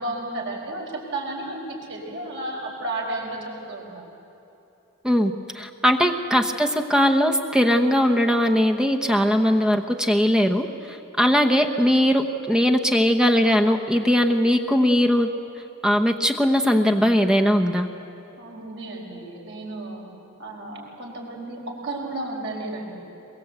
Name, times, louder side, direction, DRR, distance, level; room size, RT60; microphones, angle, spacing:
voice 1, 0.0-4.0 18.4-20.0 20.4-23.0, right 2 dB, 60° right, -1 dB, 4.9 m, -33 dB
voice 2, 5.0-15.3 15.8-17.9, equal, 5° right, 5 dB, 1.0 m, -20 dB
22.5 x 22.5 x 8.0 m, 2.9 s
head